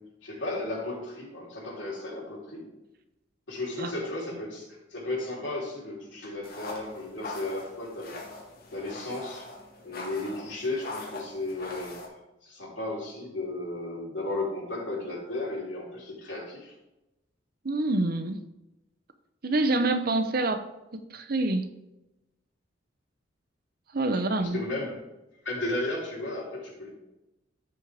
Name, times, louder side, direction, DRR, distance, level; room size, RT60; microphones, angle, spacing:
voice 1, 0.0-2.7 3.5-8.2 8.7-9.5 9.8-12.0 12.4-16.7 24.4-25.0 25.4-26.9, left 2 dB, 85° left, -4 dB, 3.6 m, -34 dB
sound 1, 6.4-12.1, left 3 dB, 55° left, 1.9 m, -42 dB
voice 2, 17.6-18.4 19.4-20.6 20.9-21.7 23.9-24.6, right 2 dB, 55° right, 9 dB, 0.8 m, -26 dB
13.5 x 5.7 x 3.5 m, 0.97 s
head